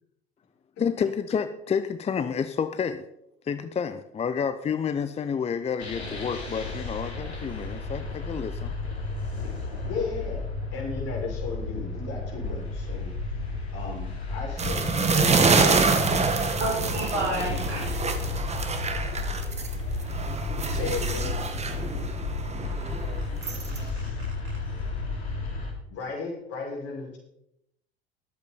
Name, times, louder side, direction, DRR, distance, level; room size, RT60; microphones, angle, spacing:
voice 1, 0.8-3.0 3.4-8.7, left 6 dB, 20° left, 11 dB, 0.7 m, -29 dB
sound 1, 5.8-25.7, left 3 dB, 80° left, 3.1 m, -33 dB
voice 2, 9.9-10.5 10.7-13.1 13.7-16.1 16.8-17.0 17.4-17.9 18.2-18.3 20.7-21.3 25.9-27.2, left 4 dB, 50° left, -1 dB, 6.0 m, -35 dB
sound 2, 14.6-19.7 20.1-23.8, right 4 dB, 20° right, 1.6 m, -26 dB
voice 3, 16.6-17.9 23.4-23.9 24.4-24.6, right 2 dB, 80° right, -4 dB, 4.3 m, -31 dB
20.5 x 8.4 x 4.3 m, 0.79 s
figure-of-eight pair, 75°, 32 cm